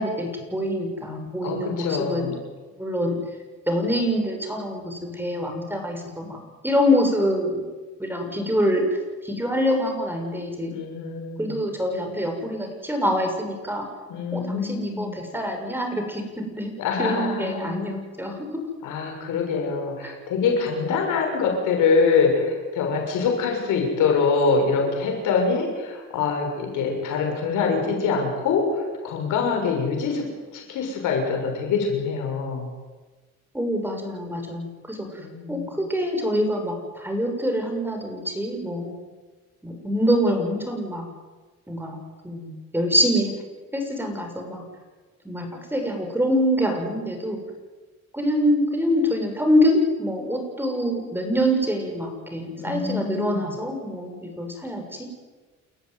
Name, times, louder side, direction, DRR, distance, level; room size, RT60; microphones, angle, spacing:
voice 1, 0.0-2.3 2.8-3.2 3.7-7.6 8.0-10.7 11.4-13.8 14.3-16.7 17.0-18.6 20.0-20.1 33.5-35.2 35.5-38.9 39.6-41.1 41.7-42.0 42.2-43.4 43.7-44.6 45.2-47.4 48.1-55.1, equal, 5° right, 3 dB, 6.8 m, -25 dB
voice 2, 1.4-2.3 10.7-11.6 14.1-15.1 16.8-17.9 18.8-30.2 30.5-32.7 35.2-35.7 52.6-53.5, left 5 dB, 90° left, 2 dB, 6.8 m, -24 dB
29.5 x 14.0 x 9.6 m, 1.3 s
cardioid pair, 90°, 30 cm